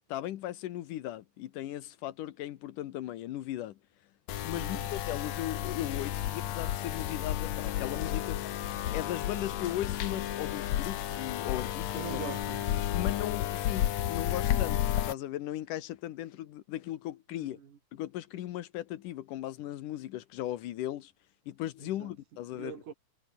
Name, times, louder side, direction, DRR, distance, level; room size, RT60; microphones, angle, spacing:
voice 1, 0.1-3.8 4.4-8.4 8.9-12.2 12.9-17.6 17.9-21.1 21.5-22.8, left 13 dB, 80° left, 2.6 m, -37 dB
sound 1, 4.3-15.1, left 12 dB, 65° left, 2.3 m, -32 dB
voice 2, 4.5-4.9 11.9-12.8 17.3-17.8 21.8-22.1 22.5-22.9, right 7 dB, 70° right, 4.2 m, -43 dB
omnidirectional pair, 3.8 m